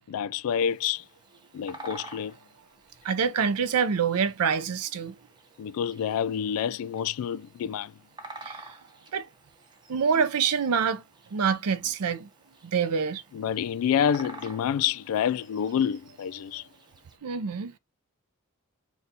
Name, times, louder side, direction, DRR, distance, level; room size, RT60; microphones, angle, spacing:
voice 1, 0.1-1.0 1.5-2.4 5.6-7.9 10.2-10.3 13.3-16.7, left 8 dB, 70° left, 0.3 m, -28 dB
Bird vocalization bird call bird song, 0.6-17.2, right 2 dB, 20° right, 0.7 m, -50 dB
voice 2, 3.0-5.1 8.4-8.6 9.1-9.3 9.9-11.0 11.3-12.3 12.7-13.2 17.2-17.7, right 6 dB, 80° right, 0.5 m, -26 dB
3.9 x 2.3 x 4.0 m
head